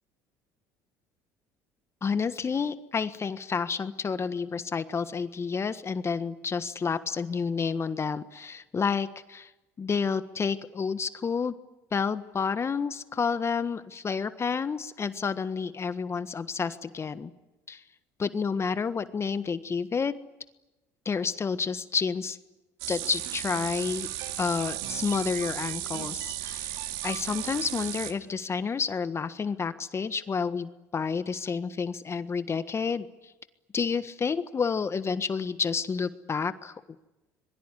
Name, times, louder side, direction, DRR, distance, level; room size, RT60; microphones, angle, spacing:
voice 1, 2.0-9.5 9.8-11.5 11.9-17.3 17.7-17.8 18.2-20.1 21.0-22.4 22.9-24.1 24.4-26.7 27.0-33.1 33.7-36.7, left 5 dB, 35° left, 12 dB, 1.5 m, -30 dB
sound 1, 22.8-28.1, right 13 dB, 75° right, 2.4 m, -35 dB
26.5 x 22.5 x 9.9 m, 1.0 s
hypercardioid pair, 70°, 8 cm